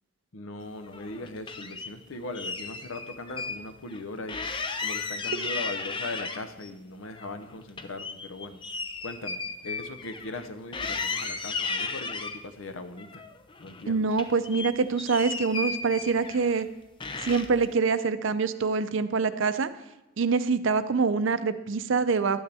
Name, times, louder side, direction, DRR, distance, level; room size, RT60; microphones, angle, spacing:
voice 1, 0.3-4.4 4.8-8.6 9.0-13.2 13.6-14.1, left 2 dB, 70° left, 9 dB, 0.8 m, -39 dB
sound 1, 0.9-1.9 2.3-3.6 3.9-4.0 4.3-6.7 7.1-10.5 10.7-12.4 13.0-13.8 14.1-16.6 17.0-17.7, left 4 dB, 25° left, 0.5 m, -35 dB
voice 2, 13.9-16.7 17.2-19.7 20.2-22.4, right 4 dB, 65° right, 13 dB, 0.5 m, -25 dB
11.5 x 9.3 x 3.4 m, 0.96 s
head